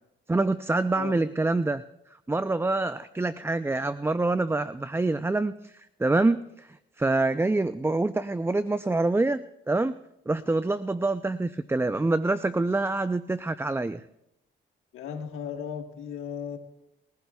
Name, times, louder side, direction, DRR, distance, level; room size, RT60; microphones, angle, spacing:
voice 1, 0.3-1.8 2.3-9.9 10.3-14.0, right 2 dB, 10° right, 13 dB, 0.5 m, -26 dB
voice 2, 14.9-16.6, left 7 dB, 85° left, 3 dB, 1.5 m, -36 dB
21.0 x 15.0 x 2.3 m, 0.82 s
supercardioid pair, 65°, 21 cm